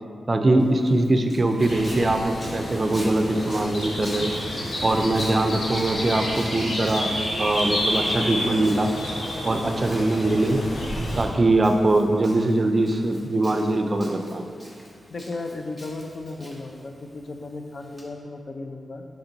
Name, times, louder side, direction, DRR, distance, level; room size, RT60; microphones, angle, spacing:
voice 1, 0.3-4.3 4.8-7.1 7.4-8.9 9.4-10.6 11.2-14.4, right 2 dB, 35° right, 5 dB, 0.4 m, -22 dB
Walk footsteps, 0.6-18.0, equal, 30° left, 1.1 m, -46 dB
sound 1, 1.6-11.2, equal, 75° left, 1.2 m, -29 dB
voice 2, 15.1-19.0, left 2 dB, 55° left, 5 dB, 0.4 m, -35 dB
5.9 x 4.3 x 3.9 m, 2.3 s
cardioid pair, 85°, 0 cm